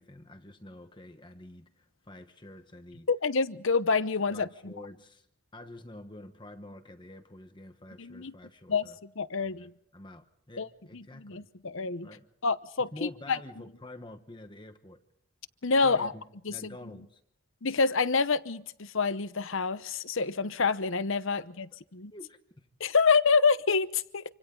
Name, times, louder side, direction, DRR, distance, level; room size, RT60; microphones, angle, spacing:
voice 1, 0.0-3.1 4.3-5.3 5.5-9.0 9.4-11.5 12.0-12.3 12.9-15.0 15.8-16.2 16.5-17.2 22.1-22.7, left 1 dB, 20° left, 1.1 m, -48 dB
voice 2, 3.1-4.7 8.0-8.3 8.7-9.7 10.6-10.7 10.9-12.1 12.4-13.4 15.6-16.1 16.5-16.7 17.6-21.7 21.9-22.1 22.8-24.2, left 4 dB, 60° left, 0.9 m, -27 dB
27.5 x 26.0 x 3.9 m
head